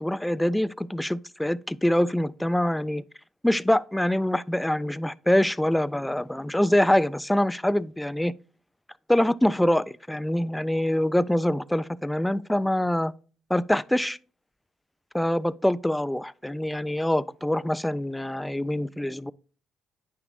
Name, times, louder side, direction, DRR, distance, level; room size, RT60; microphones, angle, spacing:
voice 1, 0.0-3.0 3.4-8.3 9.1-13.1 13.5-14.2 15.1-19.3, left 1 dB, 5° left, 0.3 m, -24 dB
9.3 x 5.9 x 2.6 m
supercardioid pair, 70°, 0 cm